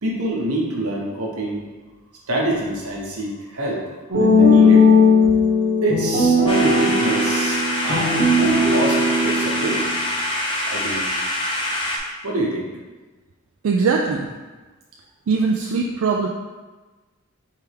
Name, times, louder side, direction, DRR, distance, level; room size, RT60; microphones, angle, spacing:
voice 1, 0.0-1.6 2.3-3.8 4.2-4.8 5.8-9.8 10.7-11.1 12.2-12.7, right 1 dB, 90° right, -2 dB, 1.0 m, -26 dB
sound 1, 4.1-10.1, left 2 dB, 35° right, 0.9 m, -17 dB
sound 2, 6.5-12.0, left 1 dB, 25° left, 0.5 m, -25 dB
voice 2, 13.6-14.3 15.3-16.3, right 4 dB, 65° right, 0 dB, 0.3 m, -20 dB
4.5 x 3.4 x 3.4 m, 1.3 s
head